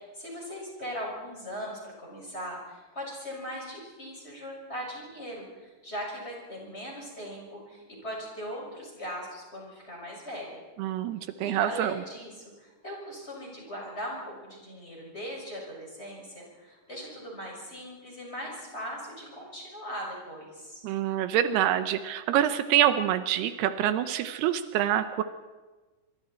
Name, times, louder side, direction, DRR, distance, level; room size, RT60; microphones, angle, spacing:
voice 1, 0.1-10.6 11.4-20.8, equal, 15° left, -2 dB, 6.5 m, -39 dB
voice 2, 10.8-12.0 20.8-25.2, right 11 dB, 85° right, 11 dB, 2.9 m, -26 dB
25.5 x 24.5 x 4.4 m, 1.2 s
omnidirectional pair, 4.6 m